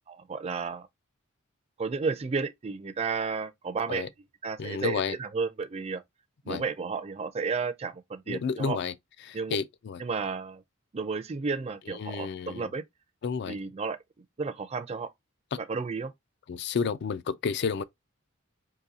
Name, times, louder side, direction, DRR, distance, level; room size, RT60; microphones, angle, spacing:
voice 1, 0.3-0.9 1.8-4.1 4.4-6.0 6.5-8.8 9.3-9.6 10.0-10.6 10.9-12.8 13.5-14.0 14.4-15.1 15.7-16.1, right 4 dB, 30° right, 0.4 m, -32 dB
voice 2, 4.6-5.2 6.5-6.6 8.3-8.9 9.2-10.0 11.9-12.7 13.2-13.6 15.5-15.6 16.5-17.8, left 5 dB, 55° left, 0.3 m, -31 dB
3.9 x 2.7 x 2.7 m
head